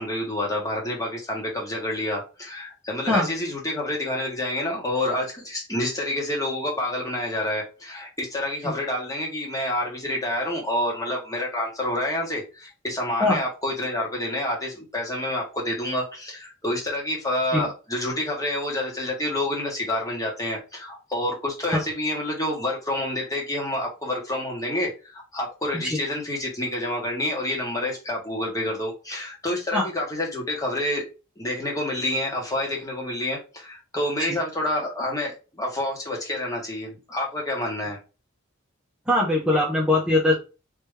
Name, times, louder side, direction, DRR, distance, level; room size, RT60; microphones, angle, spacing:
voice 1, 0.0-31.0 31.4-38.0, left 1 dB, 15° left, -1 dB, 1.4 m, -28 dB
voice 2, 39.1-40.3, left 2 dB, 5° right, -5 dB, 0.9 m, -21 dB
3.4 x 3.0 x 3.3 m, 0.30 s
head